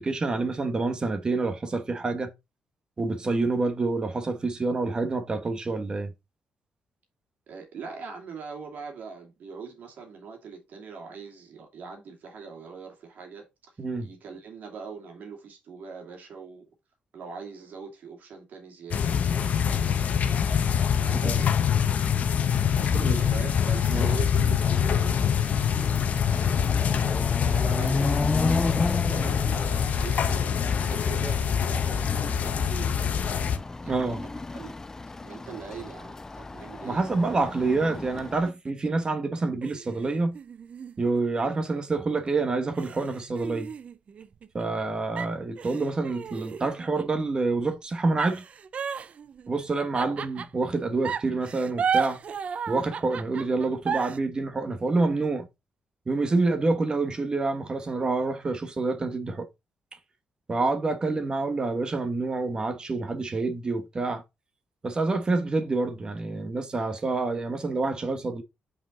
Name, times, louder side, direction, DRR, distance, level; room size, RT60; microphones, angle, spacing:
voice 1, 0.0-2.3 3.0-6.1 13.8-14.1 21.1-21.4 22.9-23.3 23.9-24.1 33.9-34.2 36.8-40.4 41.0-43.7 44.5-48.4 49.5-52.2 52.7-55.5 56.1-59.5 60.5-64.2 64.8-68.4, right 3 dB, 30° right, 1.2 m, -27 dB
voice 2, 7.5-16.6 17.1-20.4 21.0-21.6 22.7-26.1 26.6-32.9 33.8-34.7 35.2-37.1 49.9-50.2, right 5 dB, 65° right, 2.5 m, -42 dB
sound 1, 18.9-33.6, left 7 dB, 55° left, 0.9 m, -25 dB
Chatter / Car passing by / Motorcycle, 24.5-24.6 24.9-38.5, left 3 dB, 15° left, 0.3 m, -34 dB
sound 2, 37.5-38.9 39.6-41.8 42.3-42.4 42.7-44.8 45.2-47.2 48.2-50.7 51.0-54.2, right 6 dB, 45° right, 0.5 m, -34 dB
6.0 x 4.8 x 3.8 m
cardioid pair, 135°, 3 cm